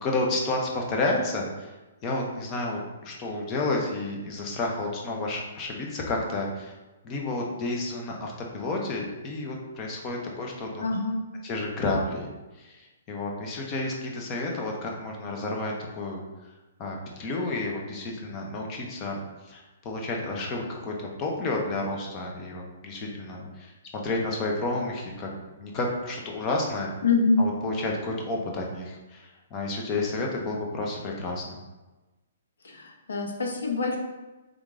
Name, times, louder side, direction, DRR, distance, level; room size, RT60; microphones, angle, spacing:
voice 1, 0.0-1.7 2.0-6.7 7.0-10.8 11.4-12.3 12.6-16.3 16.8-25.3 25.5-26.9 27.4-31.6, left 2 dB, 20° left, 0 dB, 0.7 m, -31 dB
voice 2, 10.8-11.2 27.0-27.4 32.6-34.0, left 4 dB, 90° left, 2 dB, 0.9 m, -25 dB
3.6 x 3.5 x 3.6 m, 1.1 s
hypercardioid pair, 170°, 0 cm